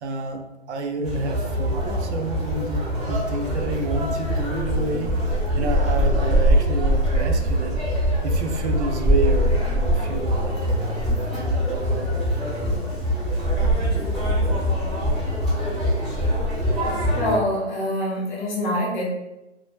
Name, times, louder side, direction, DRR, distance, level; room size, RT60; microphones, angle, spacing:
voice 1, 0.0-0.4 0.7-5.1 5.6-7.8 8.2-12.0, right 2 dB, 70° right, 4 dB, 0.5 m, -29 dB
Conversation, 1.0-17.4, equal, ahead, 0.9 m, -23 dB
voice 2, 17.1-19.1, equal, 40° left, -4 dB, 0.7 m, -25 dB
2.1 x 2.0 x 3.0 m, 0.94 s
hypercardioid pair, 175°, 35 cm